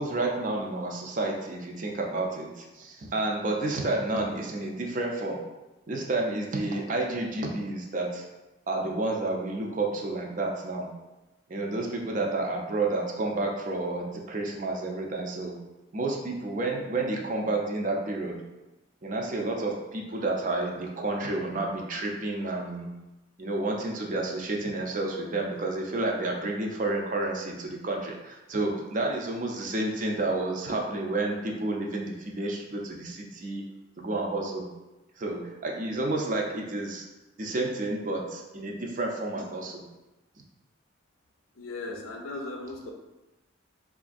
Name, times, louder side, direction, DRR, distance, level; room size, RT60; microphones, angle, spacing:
voice 1, 0.0-5.4 5.9-8.3 8.7-10.9 11.5-15.6 15.9-18.4 19.0-22.9 23.4-33.7 34.0-34.7 35.2-37.0 37.4-39.8, right 2 dB, 40° right, 1 dB, 0.4 m, -30 dB
voice 2, 41.5-42.9, left 2 dB, 85° left, 2 dB, 0.5 m, -37 dB
3.8 x 2.4 x 2.5 m, 1.0 s
head